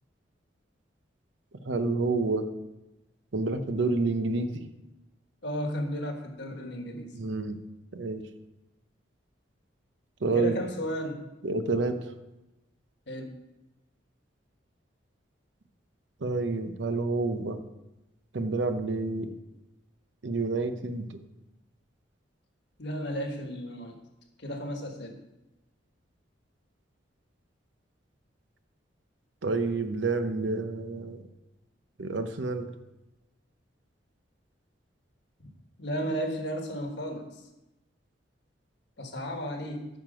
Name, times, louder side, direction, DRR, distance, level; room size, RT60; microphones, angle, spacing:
voice 1, 1.6-2.4 3.3-4.6 7.1-7.6 7.9-8.2 10.2-10.6 11.4-12.0 16.2-17.6 18.3-19.3 20.2-21.2 29.4-31.2 32.0-32.7, right 3 dB, 75° right, 9 dB, 0.7 m, -29 dB
voice 2, 5.4-7.1 10.3-11.2 13.1-13.3 22.8-24.0 24.4-25.2 35.4-35.5 35.8-37.3 39.0-39.9, equal, 60° left, 4 dB, 1.3 m, -33 dB
9.4 x 6.0 x 5.0 m, 0.98 s
head